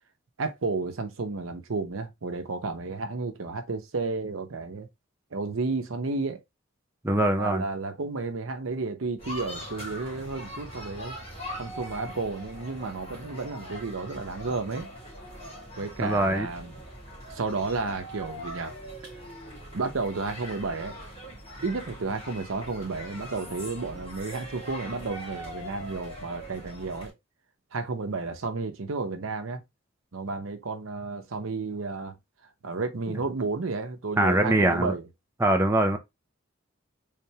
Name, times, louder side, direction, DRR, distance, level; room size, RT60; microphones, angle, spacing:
voice 1, 0.4-4.9 5.3-6.4 7.4-11.2 11.6-14.9 15.8-16.7 17.3-18.7 19.7-21.0 21.6-27.1 27.7-29.6 30.1-32.1 32.6-35.1, right 3 dB, 80° right, 0.8 m, -32 dB
voice 2, 7.0-7.6 16.0-16.5 34.2-34.9 35.4-36.0, right 1 dB, 10° right, 0.5 m, -22 dB
sound 1, 9.2-27.1, equal, 25° left, 2.1 m, -41 dB
3.6 x 3.4 x 2.8 m
head